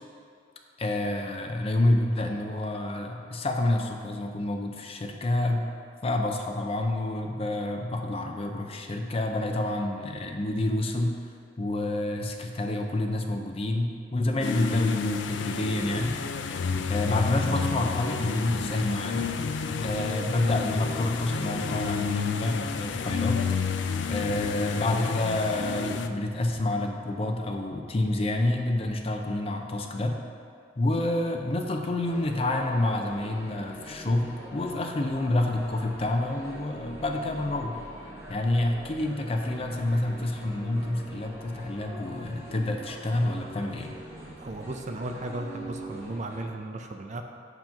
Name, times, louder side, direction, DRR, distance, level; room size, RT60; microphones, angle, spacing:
voice 1, 0.8-5.7 6.0-11.2 11.6-16.2 16.9-19.3 19.8-23.4 24.1-30.2 30.8-37.8 38.3-43.9, left 1 dB, 35° left, 3 dB, 0.5 m, -28 dB
sound 1, 14.4-26.1, left 5 dB, 90° left, 0.4 m, -30 dB
sound 2, 32.0-46.4, right 1 dB, 15° right, 1.1 m, -44 dB
voice 2, 44.3-47.2, right 2 dB, 40° right, 4 dB, 0.4 m, -35 dB
7.5 x 3.0 x 5.8 m, 2.4 s
head